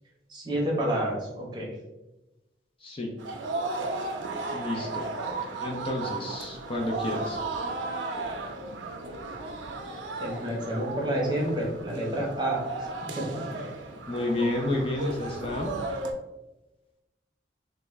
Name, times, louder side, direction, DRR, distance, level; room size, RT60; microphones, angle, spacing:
voice 1, 0.3-1.7 10.2-12.6 13.2-13.4, right 1 dB, 25° right, -2 dB, 0.8 m, -29 dB
voice 2, 2.8-3.1 4.5-5.1 5.6-7.4 14.1-15.7, left 1 dB, 30° left, 0 dB, 0.4 m, -30 dB
sound 1, 3.2-16.1, right 3 dB, 85° right, 0.5 m, -35 dB
3.6 x 2.2 x 3.1 m, 0.99 s
head